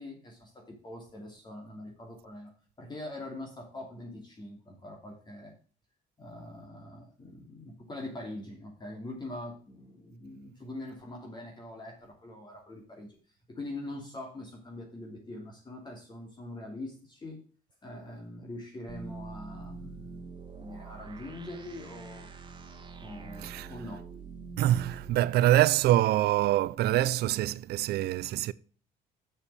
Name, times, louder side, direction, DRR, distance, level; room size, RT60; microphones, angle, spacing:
voice 1, 0.0-2.5 2.8-5.5 6.2-13.2 13.5-17.4 17.8-20.2 20.5-22.3 23.0-24.0, left 1 dB, 25° left, 2.8 m, -43 dB
sound 1, 18.9-25.1, right 4 dB, 25° right, 1.9 m, -44 dB
voice 2, 23.4-23.7 24.6-28.5, right 14 dB, 70° right, 0.6 m, -25 dB
7.3 x 7.1 x 6.7 m
cardioid pair, 110°, 17 cm